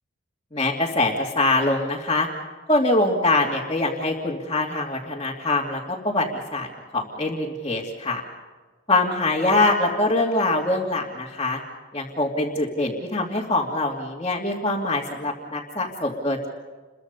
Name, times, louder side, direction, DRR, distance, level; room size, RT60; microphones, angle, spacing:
voice 1, 0.5-2.3 2.7-6.3 6.5-6.7 6.9-8.2 8.9-11.6 11.9-16.5, left 2 dB, 25° left, -5 dB, 2.8 m, -23 dB
30.0 x 23.0 x 5.5 m, 1.3 s
head